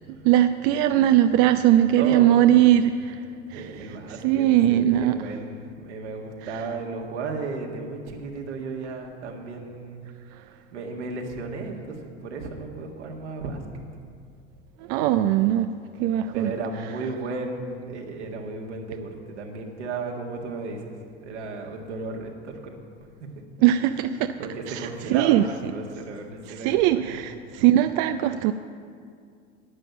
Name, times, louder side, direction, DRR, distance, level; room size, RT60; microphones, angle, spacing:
voice 1, 0.2-3.2 3.5-5.2 14.9-15.7 16.0-16.5 23.6-24.3 24.7-25.4 26.6-28.5, right 12 dB, 50° right, 10 dB, 0.5 m, -20 dB
voice 2, 2.0-2.4 3.5-10.0 10.7-13.6 16.3-20.9 21.2-22.7 24.4-27.1, right 3 dB, 75° right, 1 dB, 1.9 m, -34 dB
11.0 x 9.2 x 7.2 m, 2.2 s
hypercardioid pair, 80°, 35 cm